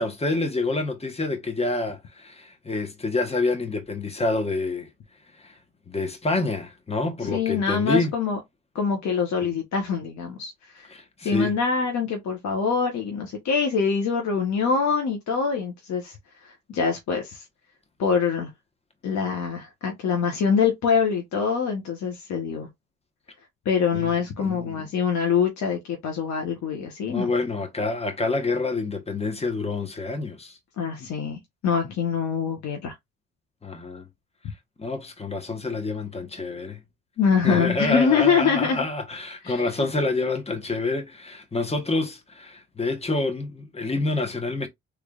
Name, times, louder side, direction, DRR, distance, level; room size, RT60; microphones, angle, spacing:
voice 1, 0.0-4.9 5.4-5.5 5.9-8.1 9.4-9.5 10.9-11.5 23.9-24.8 27.1-30.6 33.6-34.1 34.8-36.8 37.4-44.7, left 3 dB, 20° left, 1.2 m, -27 dB
voice 2, 7.2-8.4 8.7-10.9 11.2-16.2 16.4-17.4 18.0-18.5 19.0-22.7 23.6-27.3 30.8-32.9 37.2-38.8 39.4-39.6, left 6 dB, 65° left, 1.1 m, -24 dB
3.4 x 3.3 x 2.4 m
cardioid pair, 90°, 30 cm